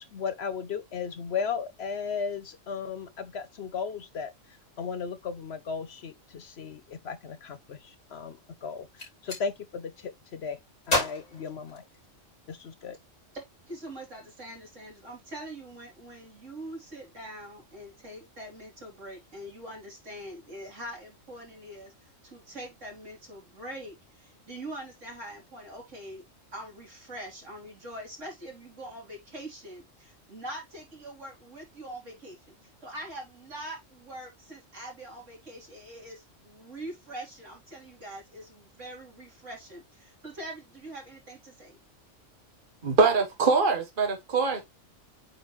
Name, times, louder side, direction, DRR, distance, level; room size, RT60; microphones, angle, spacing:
voice 1, 0.0-4.3 4.8-10.6 10.9-11.8 12.5-13.0, left 6 dB, 60° left, 0.9 m, -35 dB
Gunshot gunfire, 8.8-9.4 10.8-12.3, left 2 dB, 85° left, 4.0 m, -31 dB
voice 2, 13.3-26.2 26.5-41.8, right 1 dB, 70° right, 3.8 m, -43 dB
voice 3, 42.8-44.6, right 4 dB, 45° right, 1.4 m, -23 dB
8.7 x 3.8 x 3.1 m
omnidirectional pair, 1.3 m